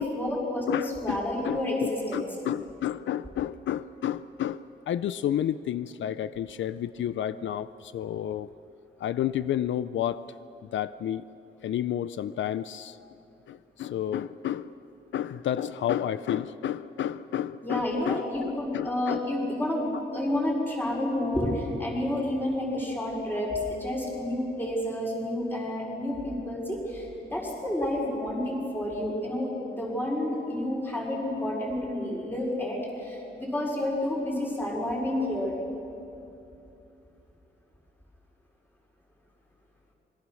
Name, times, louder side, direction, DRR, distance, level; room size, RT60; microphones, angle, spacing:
voice 1, 0.0-2.3 17.6-35.5, left 1 dB, 10° left, -3 dB, 5.1 m, -30 dB
voice 2, 0.7-1.2 1.4-8.5 9.0-10.2 10.7-11.2 11.6-13.1 13.5-14.7 15.1-19.2, left 10 dB, 85° left, 15 dB, 0.5 m, -31 dB
26.5 x 21.5 x 6.4 m, 2.9 s
wide cardioid pair, 170°, 19 cm